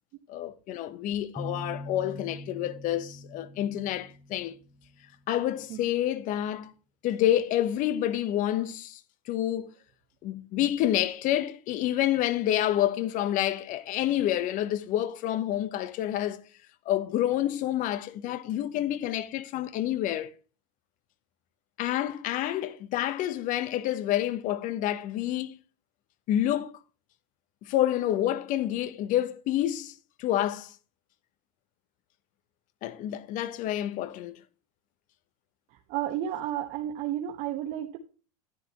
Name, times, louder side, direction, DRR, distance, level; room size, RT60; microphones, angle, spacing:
voice 1, 0.3-4.5 5.3-6.7 7.0-9.0 9.3-9.7 10.2-16.4 16.9-20.3 21.8-25.6 26.3-26.7 27.6-30.7 32.8-34.4, left 12 dB, 45° left, 1.0 m, -28 dB
sound 1, 1.4-5.0, left 1 dB, 5° left, 0.7 m, -42 dB
voice 2, 35.9-38.0, right 11 dB, 50° right, 1.2 m, -32 dB
10.5 x 9.9 x 2.9 m
supercardioid pair, 115°, 18 cm